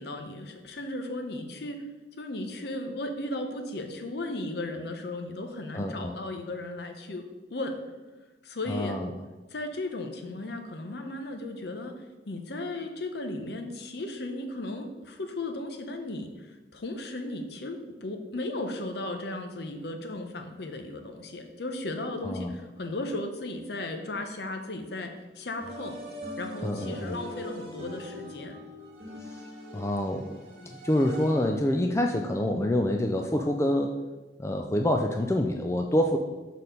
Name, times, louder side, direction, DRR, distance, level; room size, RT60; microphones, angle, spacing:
voice 1, 0.0-1.8 2.2-7.8 8.4-9.0 9.5-26.0 26.4-28.6, left 2 dB, 60° left, 5 dB, 0.8 m, -36 dB
voice 2, 5.7-6.2 8.7-9.1 22.2-22.5 26.6-27.2 29.2-29.4 29.7-34.0 34.4-36.2, left 1 dB, 15° left, 3 dB, 0.3 m, -27 dB
sound 1, 25.6-31.7, equal, 35° right, 1.7 m, -42 dB
6.4 x 4.1 x 5.2 m, 1.2 s
head